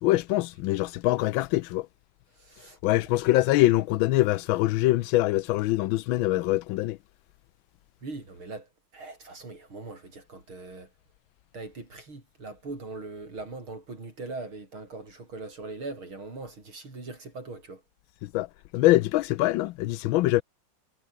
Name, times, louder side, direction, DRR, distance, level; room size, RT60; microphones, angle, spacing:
voice 1, 0.0-1.9 2.8-7.0 18.2-18.5 18.7-20.4, left 17 dB, 80° left, 1.3 m, -24 dB
voice 2, 2.3-2.8 3.2-3.3 8.0-10.9 11.5-17.8, right 3 dB, 90° right, 7.1 m, -41 dB
omnidirectional pair, 2.2 m